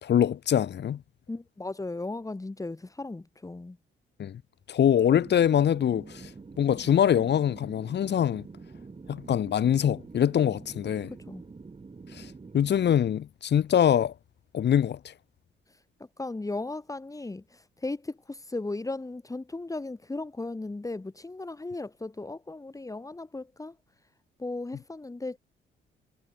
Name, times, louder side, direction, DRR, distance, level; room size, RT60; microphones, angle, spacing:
voice 1, 0.0-1.0 4.2-4.4 4.7-6.3 6.6-8.5 9.1-11.1 12.1-12.2 12.5-14.1 14.5-15.0, left 9 dB, 60° left, 2.4 m, -24 dB
voice 2, 1.3-3.8 11.1-11.4 15.7-15.8 16.2-23.8 24.4-25.4, left 2 dB, 15° left, 3.5 m, -36 dB
sound 1, 5.1-13.0, right 4 dB, 30° right, 5.0 m, -46 dB
cardioid pair, 90°, 20 cm